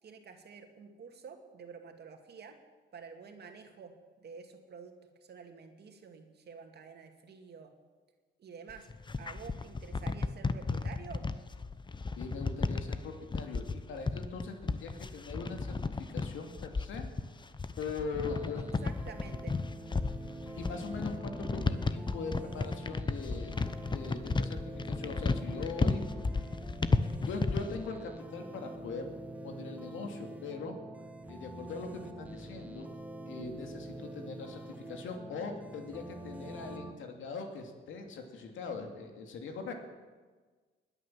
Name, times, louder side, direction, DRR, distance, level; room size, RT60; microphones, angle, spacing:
voice 1, 0.0-2.6 2.9-3.9 4.2-7.7 8.4-8.9 9.2-11.3 18.8-19.6, right 6 dB, 55° right, 5 dB, 2.3 m, -49 dB
sound 1, 8.7-27.8, left 4 dB, 25° left, 0.9 m, -33 dB
voice 2, 12.2-17.1 17.8-18.6 20.6-23.6 23.9-26.0 27.3-29.1 29.4-30.8 31.3-32.9 33.3-39.7, left 4 dB, 80° left, 4 dB, 2.5 m, -41 dB
sound 2, 18.3-36.9, right 1 dB, 5° right, 1.4 m, -45 dB
20.0 x 9.6 x 7.4 m, 1.4 s
cardioid pair, 90°, 20 cm